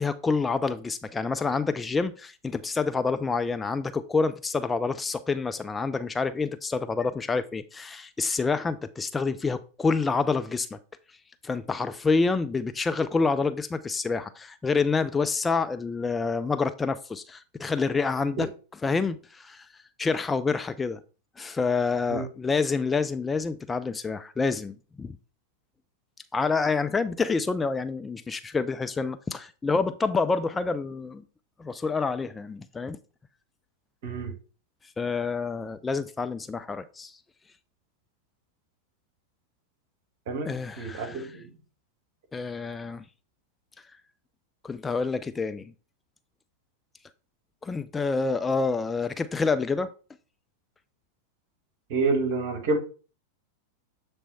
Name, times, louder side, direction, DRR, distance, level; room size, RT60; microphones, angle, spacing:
voice 1, 0.0-10.8 11.4-18.5 18.8-19.7 20.0-21.0 21.4-25.2 26.3-31.2 31.6-33.0 35.0-37.2 40.5-41.3 42.3-43.0 44.6-45.7 47.6-49.9, left 4 dB, 15° left, 0.3 m, -27 dB
voice 2, 34.0-34.3 40.3-41.5 51.9-52.8, right 3 dB, 50° right, 1.7 m, -28 dB
7.2 x 3.4 x 4.1 m
figure-of-eight pair, 90°, 0 cm